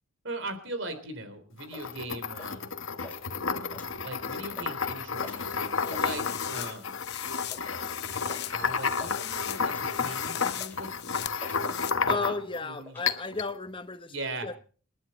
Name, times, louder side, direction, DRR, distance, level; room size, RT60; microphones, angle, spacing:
voice 1, 0.2-2.7 4.0-7.0 8.5-10.9 12.0-13.0 14.1-14.5, right 2 dB, 65° right, 3.6 m, -39 dB
sound 1, 1.6-12.6 13.1-13.5, left 5 dB, 75° left, 1.3 m, -31 dB
sound 2, 1.7-1.9 2.4-2.7 3.0-3.2 3.6-4.2 4.5-4.7 5.2-5.5 5.8-6.1 6.6-6.9 7.5-7.7 8.3-8.5 8.7-9.2 9.7-9.9 10.3-10.9 11.4-11.7 12.1-12.3 12.5-13.1, left 2 dB, 10° left, 6.4 m, -47 dB
sound 3, 5.2-11.9, left 12 dB, 55° left, 0.8 m, -40 dB
voice 2, 12.1-14.1 14.4-14.6, left 3 dB, 25° left, 0.9 m, -33 dB
29.0 x 10.5 x 4.3 m
head